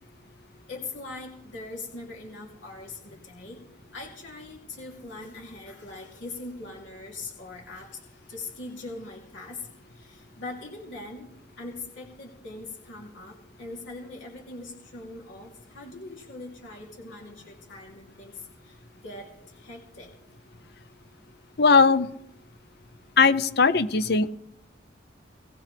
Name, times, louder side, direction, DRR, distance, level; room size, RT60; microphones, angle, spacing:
voice 1, 0.7-3.6 3.9-11.3 11.6-20.1, left 2 dB, 80° left, -2 dB, 3.0 m, -41 dB
voice 2, 21.6-22.1 23.2-24.3, left 4 dB, 55° left, 14 dB, 0.7 m, -19 dB
20.5 x 16.5 x 3.4 m, 0.79 s
head